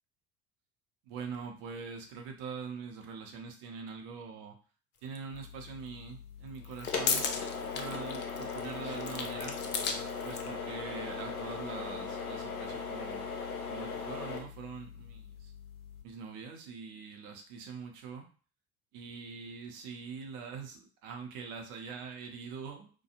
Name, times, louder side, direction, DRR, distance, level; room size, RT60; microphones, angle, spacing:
voice 1, 1.0-4.6 5.0-7.2 7.7-9.6 10.2-13.4 13.7-15.5 16.0-18.3 18.9-22.9, right 5 dB, 60° right, 3 dB, 0.8 m, -43 dB
sound 1, 5.1-5.2 6.5-10.5, left 6 dB, 30° left, 0.4 m, -36 dB
sound 2, 5.3-16.0, left 5 dB, 90° left, 0.5 m, -39 dB
2.3 x 2.2 x 2.8 m, 0.39 s
figure-of-eight pair, 60°, 43 cm